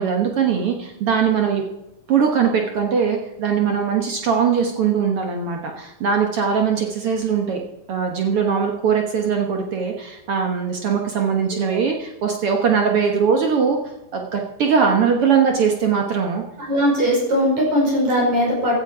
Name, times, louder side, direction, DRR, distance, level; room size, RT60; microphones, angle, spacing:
voice 1, 0.0-1.6 2.1-7.6 7.9-13.8 14.1-16.4, right 6 dB, 70° right, 2 dB, 1.3 m, -20 dB
voice 2, 16.6-18.8, equal, 50° right, -2 dB, 6.7 m, -19 dB
16.0 x 13.5 x 4.8 m, 0.93 s
omnidirectional pair, 4.4 m